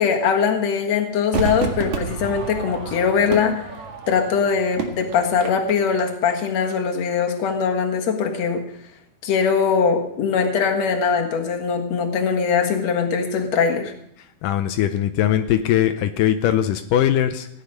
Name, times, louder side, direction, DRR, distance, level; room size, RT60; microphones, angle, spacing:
voice 1, 0.0-3.6 4.1-8.6 9.2-13.9, left 6 dB, 55° left, 2 dB, 2.6 m, -21 dB
Crowd / Fireworks, 1.3-6.7 7.0-7.1, right 5 dB, 60° right, 3.0 m, -30 dB
voice 2, 14.4-17.5, left 11 dB, 85° left, 7 dB, 2.3 m, -20 dB
17.0 x 10.5 x 5.4 m, 0.73 s
omnidirectional pair, 3.8 m